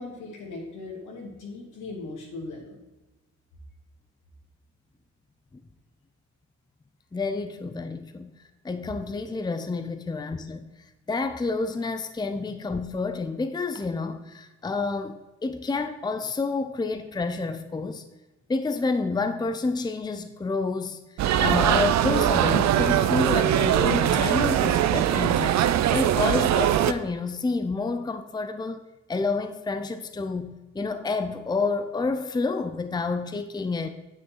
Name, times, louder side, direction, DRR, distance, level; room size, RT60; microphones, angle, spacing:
voice 1, 0.0-2.8, left 3 dB, 80° left, -2 dB, 3.2 m, -39 dB
voice 2, 7.1-8.3 8.6-10.7 11.1-18.0 18.5-21.0 21.4-25.6 25.9-28.8 29.1-33.9, left 3 dB, 15° left, 9 dB, 0.6 m, -29 dB
sound 1, 21.2-26.9, right 11 dB, 65° right, 0.6 m, -21 dB
9.3 x 7.9 x 3.9 m, 1.1 s
cardioid pair, 90°, 30 cm